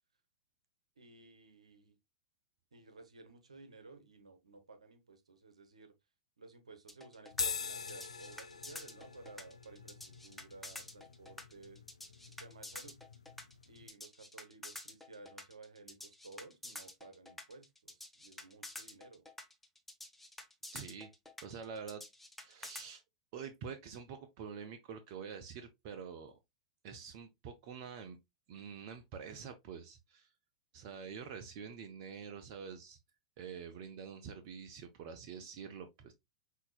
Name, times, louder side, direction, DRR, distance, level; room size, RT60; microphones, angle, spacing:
voice 1, 1.0-2.0 2.7-5.9 6.4-11.8 12.4-13.0 13.7-19.2, right 3 dB, 80° right, 1.0 m, -55 dB
sound 1, 6.9-22.9, left 2 dB, 5° left, 0.8 m, -49 dB
sound 2, 7.3-13.9, left 5 dB, 80° left, 0.4 m, -44 dB
voice 2, 20.7-21.1 21.4-22.0 22.4-23.0 23.3-26.4 26.8-28.2 28.5-30.3 30.7-33.0 33.4-36.1, right 6 dB, 45° right, 0.6 m, -46 dB
5.7 x 2.8 x 2.3 m
figure-of-eight pair, 100°, 3 cm